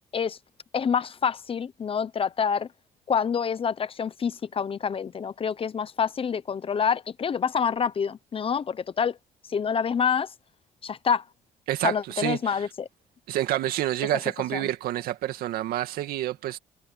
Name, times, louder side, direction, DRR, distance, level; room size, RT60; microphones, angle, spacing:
voice 1, 0.7-2.7 3.1-9.2 9.5-10.3 10.8-11.2 11.8-12.9 14.5-14.7, left 7 dB, 40° left, 0.9 m, -27 dB
voice 2, 11.7-12.7 13.3-16.6, right 14 dB, 80° right, 2.3 m, -28 dB
cardioid pair, 95°, 15 cm